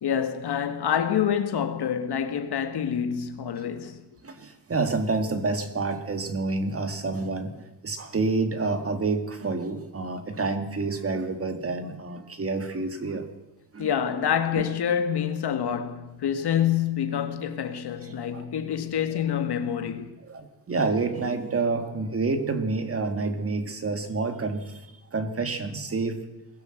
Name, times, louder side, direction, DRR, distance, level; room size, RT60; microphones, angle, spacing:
voice 1, 0.0-4.0 13.8-20.1, left 8 dB, 70° left, 1.9 m, -27 dB
voice 2, 4.2-13.3 13.7-13.9 14.6-14.7 18.0-18.4 20.2-24.8 25.1-26.2, right 3 dB, 35° right, 2.1 m, -28 dB
22.0 x 16.5 x 7.9 m
wide cardioid pair, 160°, 41 cm